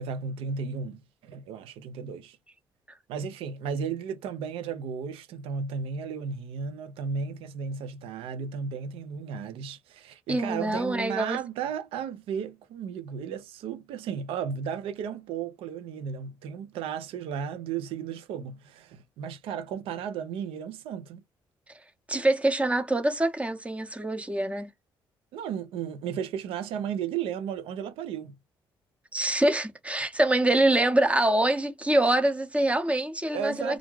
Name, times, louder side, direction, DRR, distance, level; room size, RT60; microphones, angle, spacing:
voice 1, 0.0-2.4 3.1-21.2 25.3-28.4 33.3-33.8, right 7 dB, 85° right, 0.5 m, -34 dB
voice 2, 10.3-11.4 22.1-24.7 29.1-33.8, right 1 dB, 15° right, 0.7 m, -25 dB
2.5 x 2.2 x 3.0 m
cardioid pair, 80°, 9 cm